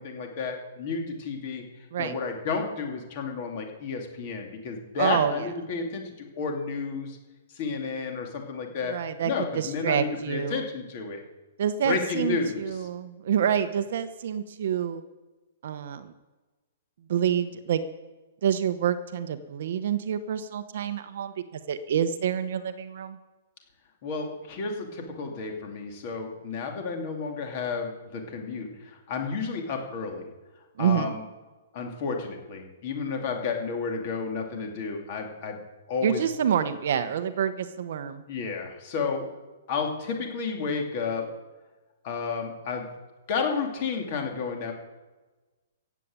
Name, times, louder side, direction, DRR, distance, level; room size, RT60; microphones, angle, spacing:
voice 1, 0.0-1.6 2.0-7.2 7.5-9.0 9.2-11.2 11.8-12.7 24.0-30.3 30.8-31.2 31.7-35.6 35.9-36.2 38.3-39.3 39.7-41.3 42.0-42.9 43.3-44.7, left 5 dB, 30° left, 3 dB, 2.5 m, -31 dB
voice 2, 5.0-5.5 8.9-10.6 11.6-15.0 15.6-16.1 17.1-17.8 18.4-23.2 30.8-31.1 36.0-38.2, right 8 dB, 45° right, 11 dB, 0.9 m, -27 dB
15.0 x 8.3 x 8.8 m, 1.2 s
hypercardioid pair, 180°, 0 cm